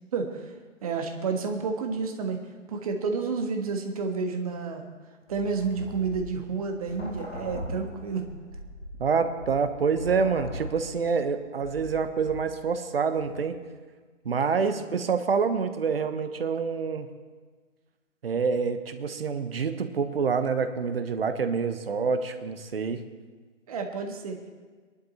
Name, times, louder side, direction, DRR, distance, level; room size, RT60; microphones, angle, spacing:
voice 1, 0.1-0.4 0.8-2.4 2.7-4.9 5.3-8.2 14.7-14.9 23.7-24.6, right 5 dB, 30° right, 4 dB, 1.5 m, -30 dB
sound 1, 5.3-12.8 13.1-13.4, left 1 dB, 55° left, 3.6 m, -40 dB
voice 2, 9.0-13.6 14.2-17.1 18.2-23.0, right 5 dB, 50° right, 9 dB, 1.3 m, -27 dB
20.0 x 11.5 x 4.2 m, 1.5 s
figure-of-eight pair, 150°, 38 cm